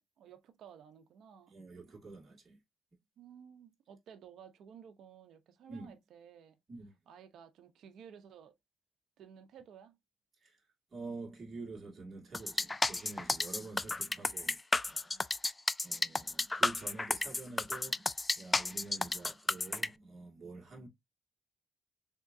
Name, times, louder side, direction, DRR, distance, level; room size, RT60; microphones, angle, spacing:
voice 1, 0.0-1.6 3.2-6.6 7.1-8.6 9.2-10.0 15.1-15.3, right 8 dB, 75° right, 0.8 m, -55 dB
voice 2, 1.5-2.6 5.7-5.9 6.7-6.9 10.4-10.6 10.9-15.1 15.8-20.9, right 3 dB, 35° right, 2.2 m, -47 dB
sound 1, 12.3-19.9, left 2 dB, 20° left, 0.3 m, -32 dB
3.7 x 3.6 x 2.6 m
cardioid pair, 90°, 0 cm